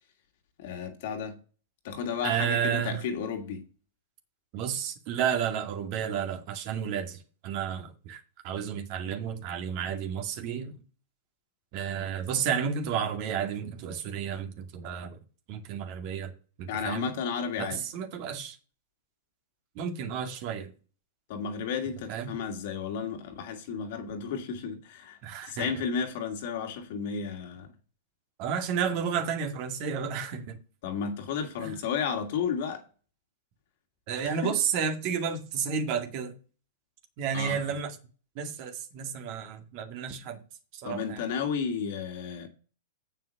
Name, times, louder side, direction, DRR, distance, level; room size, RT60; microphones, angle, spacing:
voice 1, 0.6-1.4 1.8-3.6 16.7-17.8 21.3-27.7 30.8-32.8 34.2-34.5 37.3-37.8 40.8-42.5, left 6 dB, 60° left, 2.4 m, -33 dB
voice 2, 2.2-3.0 4.5-10.8 11.7-15.2 15.5-16.3 16.6-17.1 17.6-18.6 19.8-20.7 22.1-22.3 25.2-25.7 28.4-30.6 31.6-31.7 34.1-36.3 37.2-38.0 38.4-40.4 40.7-41.2, right 7 dB, 45° right, 2.1 m, -31 dB
7.7 x 5.8 x 6.5 m
hypercardioid pair, 125°, 0 cm